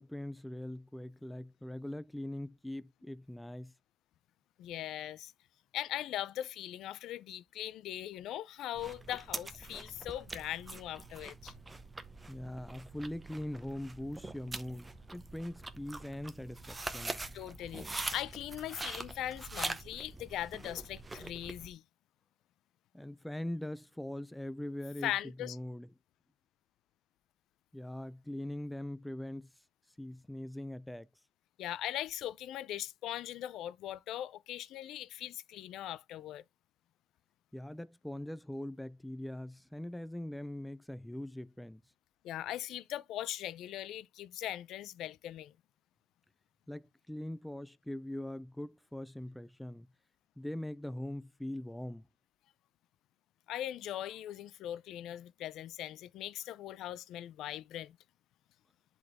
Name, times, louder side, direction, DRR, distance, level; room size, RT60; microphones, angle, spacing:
voice 1, 0.0-3.7 12.3-17.2 22.9-25.9 27.7-29.5 30.0-31.1 37.5-41.8 46.7-49.9 50.4-52.1, left 1 dB, 5° left, 0.4 m, -42 dB
voice 2, 4.6-5.3 5.7-11.5 17.3-21.8 25.0-25.6 31.6-36.4 42.2-45.5 53.5-58.0, left 12 dB, 85° left, 0.5 m, -40 dB
sound 1, 8.8-21.7, right 2 dB, 15° right, 0.8 m, -43 dB
10.5 x 4.1 x 3.5 m
cardioid pair, 140°, 0 cm